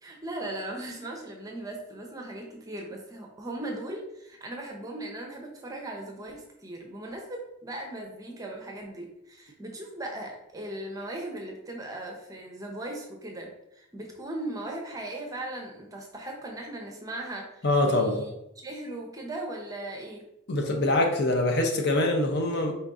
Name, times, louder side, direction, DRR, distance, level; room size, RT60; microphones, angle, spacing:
voice 1, 0.0-18.3 18.6-20.2, right 1 dB, 15° right, 1 dB, 0.6 m, -38 dB
voice 2, 17.6-18.2 20.5-22.7, left 2 dB, 50° left, 2 dB, 0.7 m, -24 dB
4.4 x 2.6 x 3.6 m, 0.84 s
head